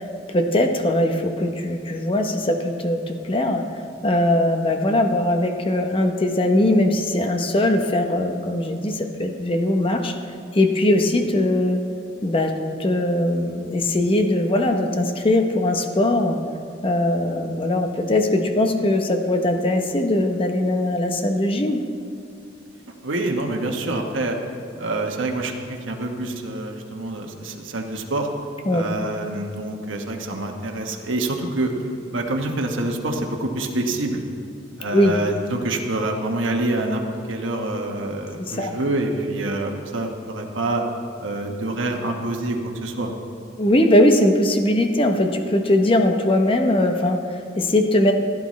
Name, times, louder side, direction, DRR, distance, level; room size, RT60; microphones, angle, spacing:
voice 1, 0.3-3.6 4.0-10.1 10.5-11.8 12.2-12.5 12.8-16.4 16.8-21.8 28.7-28.8 34.9-35.1 38.5-38.7 43.6-48.1, left 1 dB, 30° left, 5 dB, 0.8 m, -20 dB
voice 2, 23.0-24.4 24.8-28.3 28.7-31.7 32.1-34.2 34.8-37.0 37.3-40.8 41.2-43.1, right 2 dB, 90° right, 2 dB, 1.1 m, -26 dB
15.5 x 10.5 x 3.1 m, 2.3 s
head